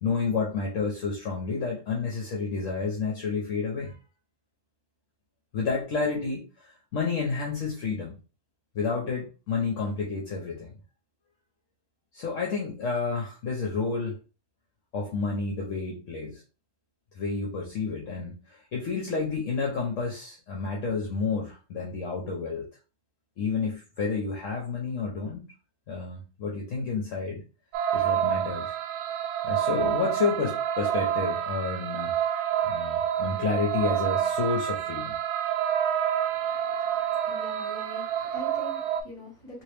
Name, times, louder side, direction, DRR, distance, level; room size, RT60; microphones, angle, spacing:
voice 1, 0.0-4.0 5.5-8.2 8.7-10.7 12.1-14.2 14.9-16.4 17.1-22.7 23.4-25.5 25.9-27.4 27.9-28.7 29.4-32.2 32.6-35.2, left 4 dB, 60° left, -1 dB, 1.1 m, -30 dB
sound 1, 27.7-39.0, right 10 dB, 80° right, 1.1 m, -28 dB
voice 2, 37.2-39.6, left 2 dB, 20° left, -3 dB, 1.7 m, -43 dB
3.0 x 3.0 x 3.2 m, 0.33 s
omnidirectional pair, 1.6 m